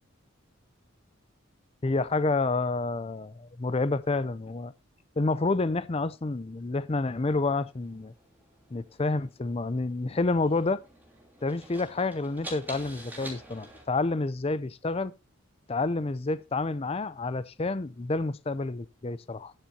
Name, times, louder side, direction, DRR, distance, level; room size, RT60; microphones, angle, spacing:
voice 1, 1.8-4.7 5.2-8.1 8.7-10.8 11.4-15.1 15.7-19.5, left 3 dB, 25° left, 0.5 m, -29 dB
sound 1, 7.1-13.8, right 1 dB, 10° right, 3.1 m, -47 dB
19.5 x 7.5 x 2.8 m
head